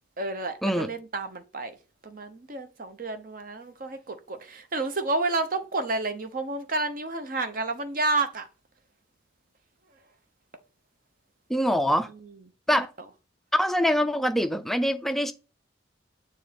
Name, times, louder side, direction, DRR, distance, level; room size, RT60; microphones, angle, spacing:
voice 1, 0.2-1.8 2.0-8.5 12.7-12.9, right 2 dB, 45° right, 0.7 m, -30 dB
voice 2, 11.5-12.1 12.7-12.9 13.5-15.3, equal, ahead, 0.3 m, -24 dB
7.1 x 3.1 x 5.0 m
head